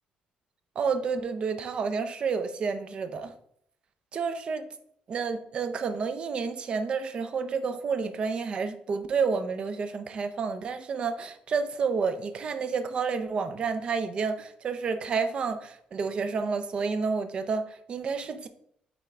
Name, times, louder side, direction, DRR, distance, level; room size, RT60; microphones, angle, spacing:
voice 1, 0.8-3.3 4.1-4.7 5.1-18.5, right 5 dB, 40° right, 10 dB, 0.6 m, -30 dB
9.0 x 3.7 x 3.4 m, 0.69 s
cardioid pair, 145°, 3 cm